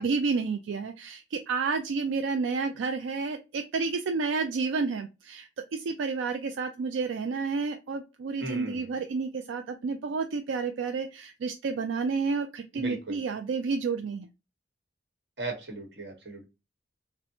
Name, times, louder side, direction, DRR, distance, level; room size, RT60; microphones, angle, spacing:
voice 1, 0.0-14.3, right 4 dB, 85° right, 6 dB, 0.4 m, -30 dB
voice 2, 8.4-9.0 12.7-13.2 15.4-16.4, right 2 dB, 60° right, 1 dB, 1.2 m, -37 dB
4.1 x 2.1 x 2.6 m, 0.27 s
head